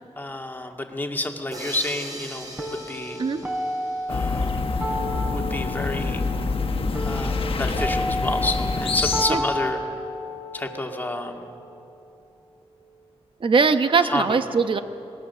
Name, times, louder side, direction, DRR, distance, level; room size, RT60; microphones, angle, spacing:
voice 1, 0.2-3.2 4.1-4.7 5.3-6.2 7.0-9.8 10.5-11.6 14.0-14.4, left 1 dB, 20° left, 2 dB, 2.0 m, -30 dB
sound 1, 1.5-4.8, right 1 dB, 35° right, 5.6 m, -39 dB
sound 2, 2.6-12.6, equal, 15° right, 3.3 m, -32 dB
sound 3, 4.1-9.2, left 4 dB, 60° left, 1.3 m, -26 dB
voice 2, 13.4-14.8, right 5 dB, 55° right, 9 dB, 1.0 m, -20 dB
25.5 x 20.0 x 6.8 m, 2.7 s
wide cardioid pair, 100°, 11 cm